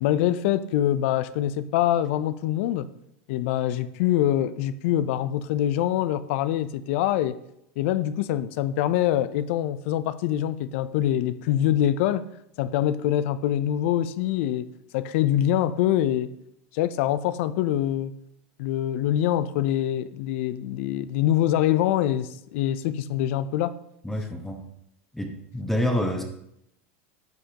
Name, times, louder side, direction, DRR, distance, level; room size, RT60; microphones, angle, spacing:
voice 1, 0.0-2.9 3.3-7.4 7.8-12.2 12.6-14.7 14.9-16.3 16.7-18.1 18.6-23.7, left 12 dB, 70° left, 15 dB, 0.6 m, -24 dB
voice 2, 24.0-24.7 25.1-26.2, equal, 5° left, 2 dB, 1.1 m, -27 dB
12.0 x 7.7 x 2.9 m, 0.78 s
supercardioid pair, 115°, 7 cm